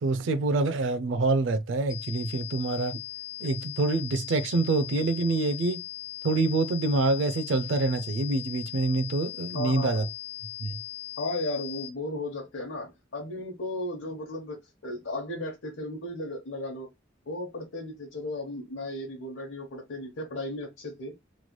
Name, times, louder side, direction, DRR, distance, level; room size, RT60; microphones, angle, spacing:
voice 1, 0.0-3.0 3.4-5.8 6.2-10.1 10.6-10.8, right 3 dB, 75° right, 0.4 m, -26 dB
sound 1, 1.9-11.9, left 15 dB, 15° left, 0.3 m, -39 dB
voice 2, 9.5-10.1 11.2-14.6 14.8-16.9 17.3-21.1, left 1 dB, 85° left, 0.9 m, -35 dB
3.1 x 3.0 x 2.2 m
head